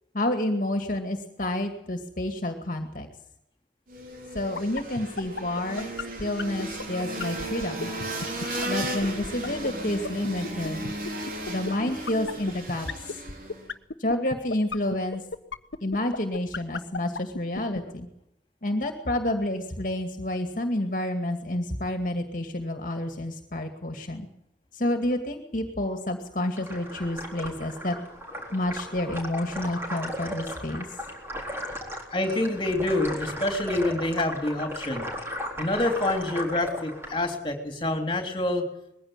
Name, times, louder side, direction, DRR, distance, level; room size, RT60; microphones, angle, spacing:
voice 1, 0.1-3.1 4.3-5.9 6.2-7.9 8.7-10.9 11.5-13.2 14.0-15.2 15.8-18.1 18.6-24.3 24.7-28.0 28.5-30.9, left 1 dB, 45° left, 5 dB, 2.3 m, -29 dB
sound 1, 3.9-13.7, right 1 dB, 50° right, 3.9 m, -35 dB
sound 2, 4.4-17.8, left 3 dB, 85° left, 1.2 m, -32 dB
sound 3, 26.6-37.3, equal, 15° right, 4.1 m, -36 dB
voice 2, 32.1-35.0 35.6-38.7, left 2 dB, 25° left, 5 dB, 3.3 m, -27 dB
21.0 x 16.0 x 9.0 m, 0.79 s
head